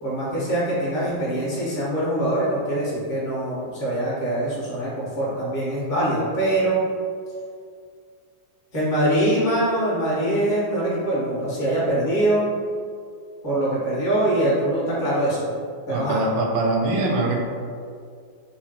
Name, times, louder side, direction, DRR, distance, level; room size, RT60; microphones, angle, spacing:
voice 1, 0.0-6.8 8.7-12.5 13.4-16.2, right 1 dB, 30° left, -8 dB, 1.1 m, -23 dB
voice 2, 15.9-17.4, right 2 dB, 85° right, 0 dB, 1.4 m, -22 dB
3.9 x 2.1 x 4.3 m, 2.2 s
omnidirectional pair, 2.1 m